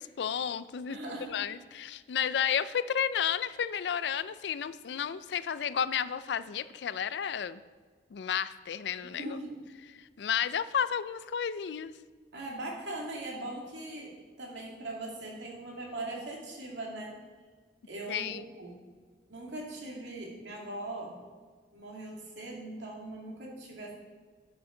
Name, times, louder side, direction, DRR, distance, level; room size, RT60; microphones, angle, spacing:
voice 1, 0.0-1.0 1.3-7.6 8.1-9.3 10.0-11.9 18.1-18.5, left 8 dB, 75° left, 16 dB, 0.4 m, -32 dB
voice 2, 0.9-1.4 9.0-9.6 12.3-14.1 14.4-17.2 17.9-18.8 19.3-21.2 21.7-23.9, right 2 dB, 90° right, -2 dB, 2.3 m, -40 dB
12.0 x 7.0 x 3.8 m, 1.5 s
head